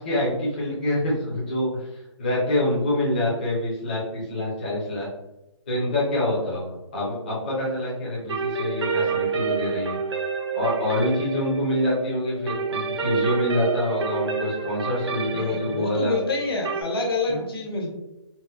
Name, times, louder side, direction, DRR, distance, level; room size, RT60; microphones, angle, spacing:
voice 1, 0.0-1.9 2.2-5.1 5.7-10.0 10.5-16.2 17.3-17.4, left 1 dB, 20° left, -8 dB, 0.5 m, -26 dB
sound 1, 8.3-16.8, right 5 dB, 60° right, 0.6 m, -29 dB
voice 2, 15.3-17.9, left 3 dB, 50° left, 0 dB, 0.8 m, -27 dB
4.0 x 2.0 x 2.3 m, 0.93 s
hypercardioid pair, 175°, 16 cm